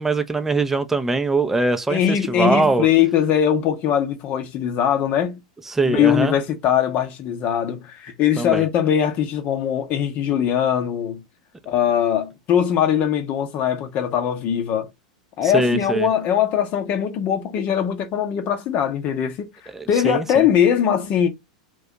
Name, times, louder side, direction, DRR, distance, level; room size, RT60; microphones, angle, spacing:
voice 1, 0.0-2.9 5.7-6.3 8.4-8.6 15.4-16.1 19.7-20.4, right 3 dB, 10° right, 0.5 m, -22 dB
voice 2, 1.9-5.4 5.8-11.2 11.7-14.9 15.4-19.5 19.9-21.3, left 9 dB, 45° left, 0.8 m, -21 dB
2.7 x 2.2 x 3.7 m
hypercardioid pair, 100°, 4 cm